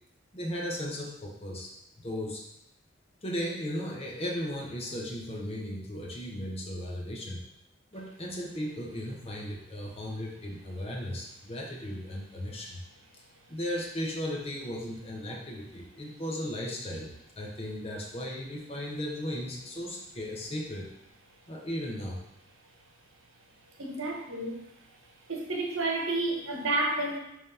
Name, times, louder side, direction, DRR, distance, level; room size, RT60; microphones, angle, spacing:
voice 1, 0.3-1.7 2.0-2.4 3.2-7.4 7.9-12.8 13.2-20.9 21.5-22.2, equal, 30° left, -1 dB, 1.0 m, -36 dB
voice 2, 23.8-24.6 25.3-27.2, right 2 dB, 90° right, 1 dB, 1.1 m, -30 dB
5.4 x 3.2 x 5.5 m, 0.83 s
head